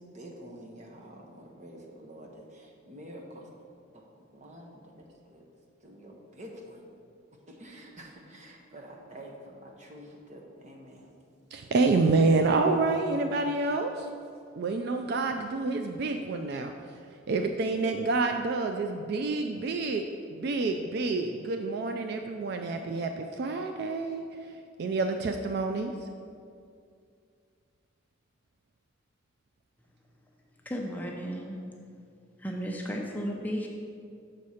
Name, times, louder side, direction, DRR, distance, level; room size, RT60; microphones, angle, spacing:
voice 1, 0.0-3.5 3.9-5.5 5.8-6.9 7.5-11.1, equal, 35° right, 0 dB, 0.9 m, -48 dB
voice 2, 11.5-14.1 14.6-17.0 17.3-26.1, right 3 dB, 55° right, 5 dB, 0.3 m, -28 dB
voice 3, 30.7-31.6 32.4-33.7, equal, 10° left, 0 dB, 0.5 m, -34 dB
6.3 x 4.2 x 6.3 m, 2.4 s
head